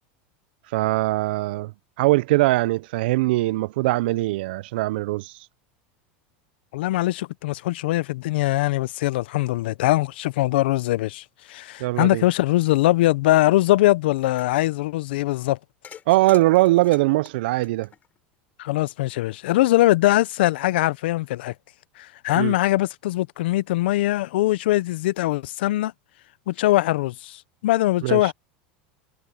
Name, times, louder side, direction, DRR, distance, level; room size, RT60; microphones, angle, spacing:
voice 1, 0.7-1.7 2.0-5.3 11.8-12.2 16.1-17.9 22.4-22.5 28.0-28.2, right 19 dB, 75° right, 0.4 m, -21 dB
voice 2, 6.7-15.6 18.6-21.5 22.0-25.9 26.5-28.3, left 17 dB, 80° left, 0.7 m, -22 dB
sound 1, 14.2-14.7 15.8-18.3, left 8 dB, 30° left, 7.9 m, -46 dB
supercardioid pair, 120°, 6 cm